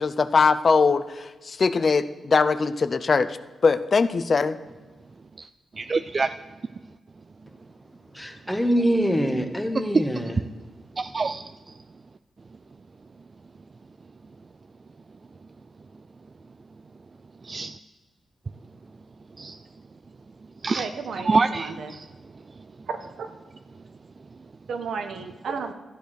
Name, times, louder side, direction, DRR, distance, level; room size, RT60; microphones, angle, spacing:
voice 1, 0.0-3.4 3.6-4.6, left 4 dB, 45° left, 13 dB, 0.6 m, -21 dB
voice 2, 5.8-6.3 11.0-11.4 17.4-17.7 19.4-19.6 20.6-20.9 21.2-22.1, right 4 dB, 35° right, 11 dB, 0.4 m, -25 dB
voice 3, 8.1-10.4, equal, 5° left, 6 dB, 1.5 m, -24 dB
voice 4, 20.8-22.0 22.9-23.3 24.7-25.7, right 5 dB, 80° right, 7 dB, 1.3 m, -33 dB
13.0 x 8.2 x 6.4 m, 1.3 s
wide cardioid pair, 110°, 0 cm